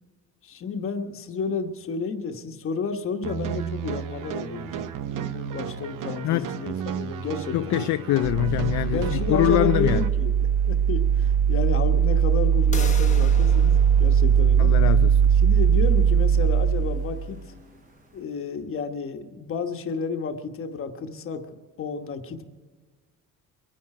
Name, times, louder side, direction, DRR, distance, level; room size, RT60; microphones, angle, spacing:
voice 1, 0.4-7.8 8.9-10.4 10.7-14.7 15.2-17.4 18.1-22.4, left 5 dB, 45° left, 1.2 m, -31 dB
sound 1, 3.2-10.1, right 9 dB, 90° right, 0.9 m, -33 dB
voice 2, 7.5-10.0 14.6-15.2, left 15 dB, 65° left, 0.4 m, -23 dB
sound 2, 8.2-17.3, right 8 dB, 30° right, 0.6 m, -20 dB
sound 3, 12.7-18.3, left 5 dB, 25° left, 1.0 m, -42 dB
23.0 x 10.0 x 4.9 m
cardioid pair, 155°, 31 cm